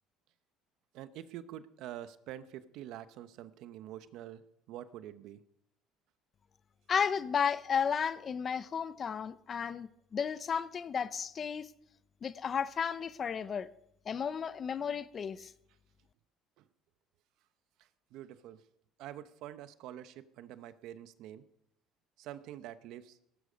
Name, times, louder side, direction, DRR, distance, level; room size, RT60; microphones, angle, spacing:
voice 1, 0.9-5.4 16.6-16.7 18.1-18.6 19.0-21.4 22.2-23.2, right 12 dB, 65° right, 1.0 m, -46 dB
voice 2, 6.9-11.7 12.2-13.7 14.1-15.5, left 7 dB, 30° left, 0.7 m, -33 dB
18.0 x 15.0 x 5.2 m
cardioid pair, 140°, 0 cm